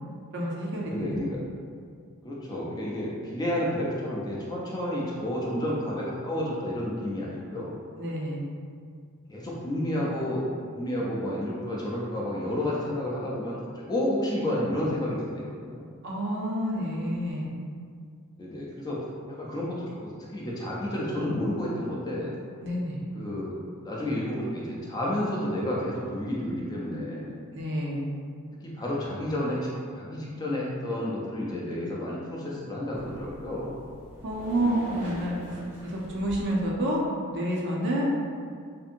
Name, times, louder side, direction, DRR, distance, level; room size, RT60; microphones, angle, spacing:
voice 1, 0.3-1.2 8.0-8.4 16.0-17.5 22.6-23.1 27.5-28.1 34.2-35.3 35.8-37.0 37.3-38.1, right 1 dB, 55° right, -3 dB, 0.5 m, -29 dB
voice 2, 0.8-1.4 2.2-7.7 9.3-10.5 10.7-15.9 18.4-19.0 19.4-22.3 23.1-23.5 23.8-27.4 28.6-29.6 30.0-33.8, left 1 dB, 20° left, -5 dB, 0.4 m, -31 dB
sound 1, 32.9-36.7, equal, 75° right, 0.9 m, -42 dB
2.6 x 2.6 x 2.5 m, 2.1 s
head